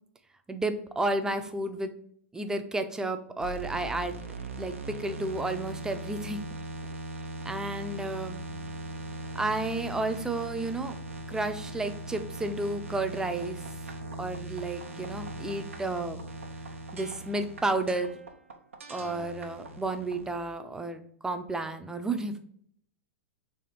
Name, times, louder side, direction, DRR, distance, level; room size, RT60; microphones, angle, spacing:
voice 1, 0.5-1.9 2.3-4.2 4.6-6.4 7.5-8.4 9.3-11.0 11.3-13.6 14.2-16.2 16.9-18.1 18.9-22.4, right 2 dB, 10° right, 8 dB, 0.5 m, -32 dB
sound 1, 3.4-20.5, right 2 dB, 90° right, 0.7 m, -40 dB
3.4 x 3.4 x 4.2 m, 0.66 s
hypercardioid pair, 110°, 7 cm